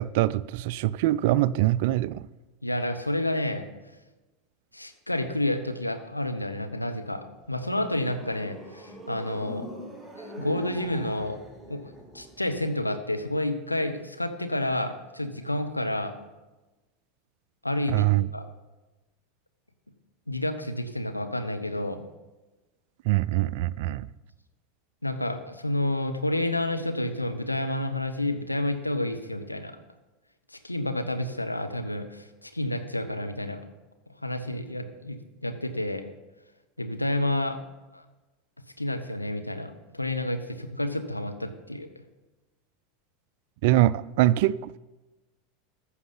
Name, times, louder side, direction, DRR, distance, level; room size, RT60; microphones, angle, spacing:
voice 1, 0.0-2.3 17.9-18.3 23.0-24.1 43.6-44.8, right 15 dB, 55° right, 0.3 m, -23 dB
voice 2, 2.6-3.7 4.7-9.7 10.2-11.4 11.7-11.8 12.1-16.1 17.6-18.1 18.3-18.5 20.3-22.0 25.0-29.8 30.5-33.6 34.2-36.0 36.8-37.6 37.9-38.0 38.8-41.9, left 1 dB, 90° left, 0.9 m, -30 dB
sound 1, 7.3-12.7, equal, 10° left, 3.1 m, -43 dB
14.5 x 6.6 x 5.6 m
figure-of-eight pair, 80°, 0 cm